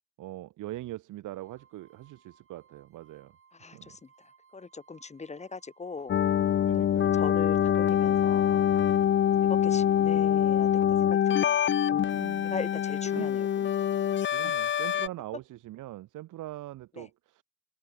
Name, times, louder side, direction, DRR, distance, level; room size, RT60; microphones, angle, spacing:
voice 1, 0.2-3.3 3.7-4.0 6.7-7.2 12.1-12.6 13.1-13.3 14.3-17.4, right 16 dB, 85° right, 1.7 m, -42 dB
sound 1, 1.3-7.7, right 6 dB, 45° right, 7.5 m, -62 dB
voice 2, 3.6-4.0 4.5-6.2 7.0-8.6 9.5-10.7 11.0-11.6 12.4-13.5 13.8-14.0 14.4-14.5 17.0-17.1, left 4 dB, 20° left, 1.0 m, -40 dB
sound 2, 6.1-15.1, left 9 dB, 40° left, 0.5 m, -25 dB
cardioid pair, 90°, 30 cm